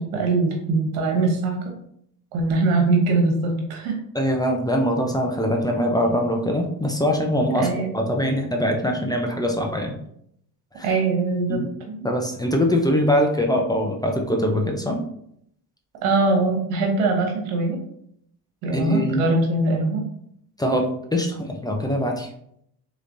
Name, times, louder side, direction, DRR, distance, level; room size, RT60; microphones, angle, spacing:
voice 1, 0.0-1.6 2.3-4.0 7.5-7.9 10.8-11.6 11.9-12.0 16.0-17.8 18.6-20.1, right 3 dB, 85° right, 1 dB, 1.0 m, -22 dB
voice 2, 4.1-7.7 7.9-9.9 10.7-10.9 11.5-11.7 12.0-15.0 18.7-19.3 20.6-22.3, equal, 10° left, 1 dB, 0.5 m, -22 dB
3.1 x 3.1 x 2.6 m, 0.70 s
supercardioid pair, 70°, 47 cm